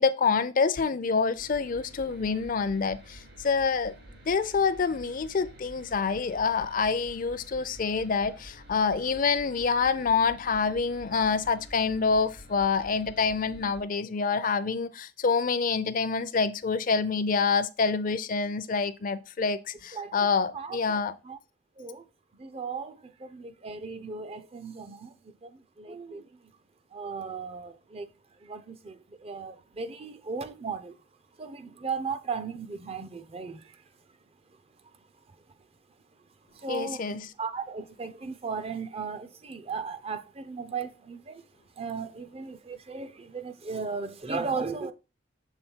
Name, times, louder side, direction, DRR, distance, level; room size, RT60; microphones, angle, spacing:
voice 1, 0.0-3.9 4.3-21.1 36.7-37.3, left 5 dB, 50° left, 0.5 m, -27 dB
sound 1, 1.4-13.8, right 1 dB, 70° right, 3.6 m, -49 dB
voice 2, 19.9-20.3 20.5-21.4 21.8-22.0 22.4-26.4 26.9-28.1 28.4-31.0 31.4-33.8 36.5-41.4 41.8-44.9, right 5 dB, 35° right, 0.5 m, -36 dB
6.9 x 3.5 x 4.4 m
head